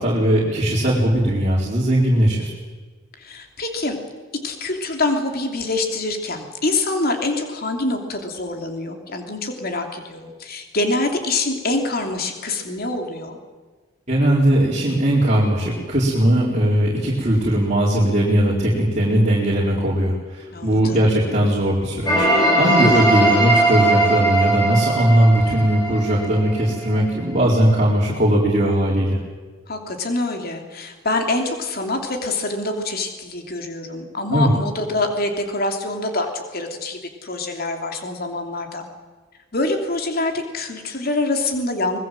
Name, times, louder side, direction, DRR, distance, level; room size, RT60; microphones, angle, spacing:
voice 1, 0.0-2.5 14.1-29.2 34.3-34.5, right 1 dB, 35° right, -5 dB, 4.2 m, -19 dB
voice 2, 3.2-4.0 4.4-13.4 20.5-21.1 29.7-38.8 39.5-42.0, left 2 dB, 50° left, 4 dB, 3.1 m, -25 dB
sound 1, 22.1-26.9, right 2 dB, 20° left, 7.5 m, -19 dB
25.0 x 20.5 x 7.7 m, 1.4 s
head